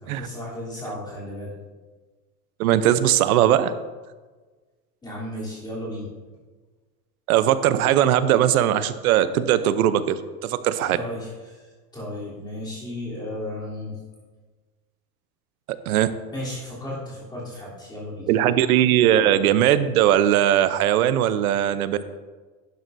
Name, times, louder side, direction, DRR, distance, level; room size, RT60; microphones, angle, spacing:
voice 1, 0.0-1.5 5.0-6.1 10.9-11.6 11.9-13.9 16.3-18.3, left 1 dB, 10° left, -8 dB, 3.4 m, -34 dB
voice 2, 2.6-3.7 7.3-11.0 15.7-16.1 18.3-22.0, right 11 dB, 70° right, 13 dB, 0.8 m, -19 dB
11.0 x 11.0 x 2.7 m, 1.4 s
supercardioid pair, 165°, 45 cm